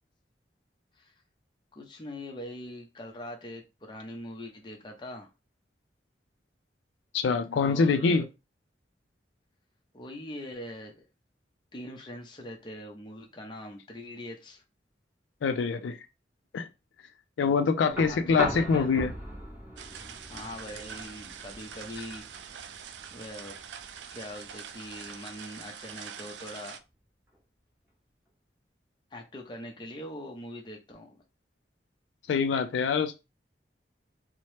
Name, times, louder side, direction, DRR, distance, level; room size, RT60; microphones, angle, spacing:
voice 1, 1.7-5.3 7.6-8.3 9.9-11.0 11.7-14.6 18.0-18.9 20.3-22.8 23.1-23.6 24.1-26.8 29.1-31.2, left 1 dB, 25° left, 0.5 m, -42 dB
voice 2, 7.1-8.2 15.4-16.0 16.5-16.7 17.4-19.1 32.3-33.2, left 5 dB, 85° left, 0.3 m, -25 dB
sound 1, 17.9-25.9 27.3-27.4, equal, 10° right, 0.8 m, -40 dB
sound 2, 19.8-26.8, right 8 dB, 85° right, 0.3 m, -44 dB
2.8 x 2.0 x 3.1 m
head